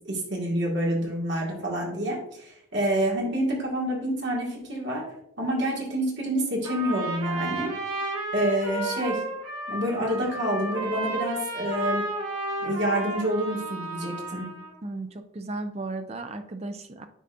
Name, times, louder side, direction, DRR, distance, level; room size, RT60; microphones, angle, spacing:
voice 1, 0.1-5.0 5.4-7.7 8.3-9.2 9.7-12.0 12.6-14.4, equal, 55° right, -2 dB, 2.0 m, -27 dB
Trumpet, 6.6-14.7, right 2 dB, 85° right, 1.7 m, -32 dB
voice 2, 14.8-17.1, right 2 dB, 30° right, 8 dB, 0.5 m, -35 dB
10.0 x 4.2 x 2.6 m, 0.75 s
head